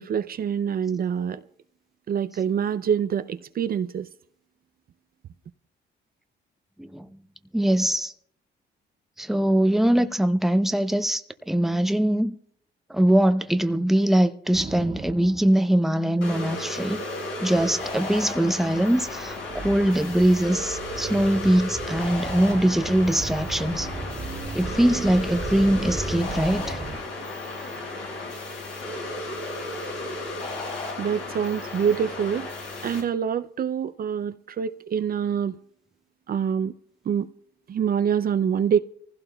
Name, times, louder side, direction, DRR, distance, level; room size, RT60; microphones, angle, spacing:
voice 1, 0.0-1.4 2.1-4.1 31.0-32.5 32.8-35.6 36.3-36.7 37.1-37.3 37.7-38.8, right 8 dB, 50° right, 0.5 m, -25 dB
voice 2, 7.5-8.1 9.2-12.4 12.9-17.0 17.4-23.9 24.5-26.9, right 1 dB, ahead, 0.7 m, -22 dB
sound 1, 14.5-15.5 17.6-27.0, right 3 dB, 30° right, 1.7 m, -36 dB
sound 2, 16.2-33.0, left 2 dB, 85° left, 6.0 m, -34 dB
25.5 x 15.5 x 2.3 m
cardioid pair, 90°, 20 cm